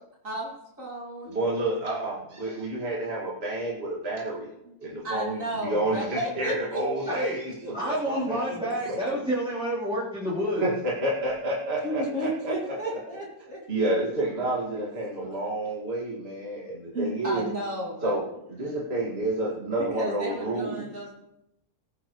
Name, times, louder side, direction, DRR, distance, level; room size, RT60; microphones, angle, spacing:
voice 1, 0.8-1.3 4.6-4.7 5.0-7.3 8.1-8.6 11.8-13.6 16.9-18.2 18.6-18.8 19.8-21.1, right 1 dB, 55° right, -4 dB, 3.0 m, -33 dB
voice 2, 1.3-4.5 4.8-7.9 8.3-8.4 8.9-9.2 10.6-12.5 13.7-17.4 18.0-18.2 18.5-20.9, right 1 dB, 40° right, -5 dB, 2.5 m, -29 dB
voice 3, 7.7-10.6, equal, 5° right, -11 dB, 3.7 m, -29 dB
20.5 x 9.9 x 3.2 m, 0.84 s
omnidirectional pair, 1.6 m